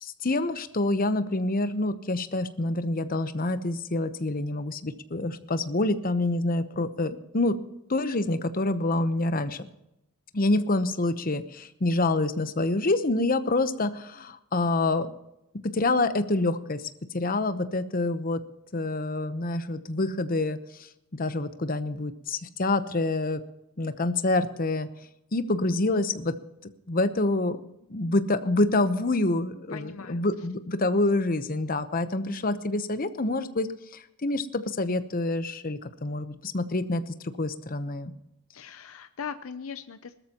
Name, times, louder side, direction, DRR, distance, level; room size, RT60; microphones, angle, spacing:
voice 1, 0.0-7.6 7.9-9.6 10.3-15.1 15.7-16.9 17.1-18.4 18.7-20.6 21.1-23.4 23.8-24.9 25.3-26.4 26.9-27.6 27.9-38.1, left 2 dB, 40° left, 11 dB, 0.9 m, -27 dB
voice 2, 29.7-30.2 38.5-40.1, left 6 dB, 80° left, 10 dB, 0.6 m, -39 dB
20.5 x 13.5 x 3.0 m, 0.86 s
head